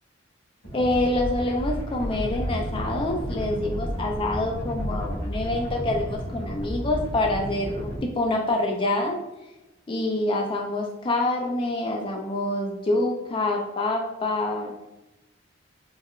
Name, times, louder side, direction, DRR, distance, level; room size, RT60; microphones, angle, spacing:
sound 1, 0.6-8.0, equal, 85° left, 1.5 m, -32 dB
voice 1, 0.7-9.2 9.9-14.7, left 2 dB, 25° left, 0 dB, 0.3 m, -26 dB
4.6 x 2.1 x 2.4 m, 0.98 s
head